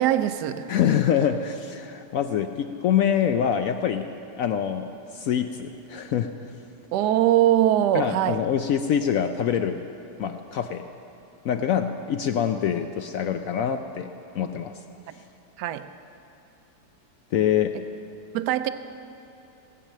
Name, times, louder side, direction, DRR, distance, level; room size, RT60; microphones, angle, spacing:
voice 1, 0.0-0.7 6.9-8.4 15.6-15.9 18.3-18.7, right 12 dB, 75° right, 11 dB, 1.1 m, -22 dB
voice 2, 0.7-4.1 4.4-6.3 7.9-9.8 10.2-10.8 11.4-14.7 17.3-17.7, left 9 dB, 70° left, 7 dB, 0.8 m, -25 dB
18.0 x 8.8 x 6.5 m, 2.9 s
omnidirectional pair, 1.9 m